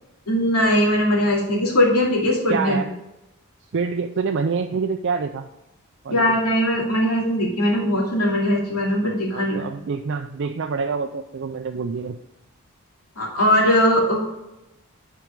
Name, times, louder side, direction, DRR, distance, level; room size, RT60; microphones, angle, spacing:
voice 1, 0.3-2.8 6.1-9.6 13.2-14.2, equal, 90° left, -3 dB, 2.6 m, -20 dB
voice 2, 2.5-2.9 3.7-5.5 6.0-6.3 9.3-12.2, right 5 dB, 55° right, 5 dB, 0.4 m, -26 dB
9.2 x 4.7 x 5.1 m, 0.95 s
head